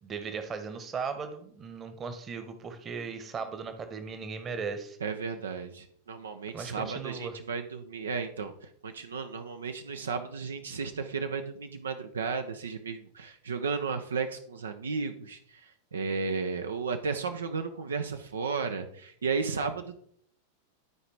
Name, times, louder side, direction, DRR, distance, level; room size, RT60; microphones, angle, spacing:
voice 1, 0.0-5.0 6.5-7.4, right 5 dB, 25° right, 8 dB, 1.1 m, -37 dB
voice 2, 5.0-20.0, right 5 dB, 70° right, 7 dB, 0.6 m, -34 dB
12.0 x 4.8 x 3.3 m, 0.64 s
figure-of-eight pair, 90°, 0 cm